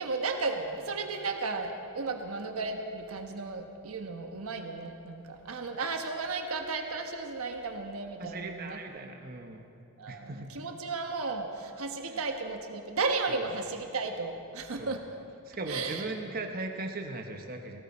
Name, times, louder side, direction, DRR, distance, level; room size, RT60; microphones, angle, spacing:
voice 1, 0.0-8.8 10.0-15.0 15.7-16.1, right 3 dB, 80° right, 4 dB, 1.2 m, -34 dB
voice 2, 8.2-9.7 10.1-10.5 12.1-12.2 13.3-13.5 14.8-15.0 15.4-17.8, right 2 dB, 45° right, 3 dB, 0.9 m, -38 dB
18.5 x 17.0 x 4.3 m, 2.7 s
head